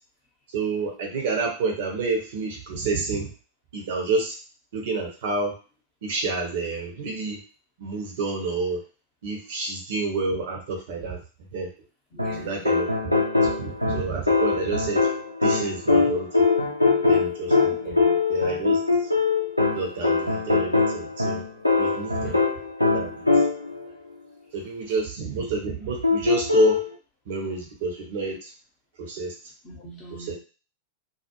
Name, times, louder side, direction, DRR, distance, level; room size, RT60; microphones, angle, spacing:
voice 1, 0.5-3.3 3.7-4.3 4.7-5.5 6.0-7.4 7.8-8.8 9.2-11.2 11.5-11.7 12.4-13.1 13.6-15.1 15.4-16.4 17.0-17.9 18.3-18.8 19.7-21.4 21.8-22.4 22.9-23.3 24.5-26.8 27.3-28.5 29.0-29.3 30.3-30.4, right 4 dB, 55° right, 1 dB, 0.8 m, -28 dB
voice 2, 12.1-12.7 17.7-18.2 22.2-22.4 29.6-30.3, right 2 dB, 35° left, -1 dB, 0.8 m, -43 dB
sound 1, 12.2-23.8 26.0-26.9, left 4 dB, 90° left, 0.5 m, -22 dB
2.3 x 2.1 x 2.9 m, 0.35 s
figure-of-eight pair, 90°, 0 cm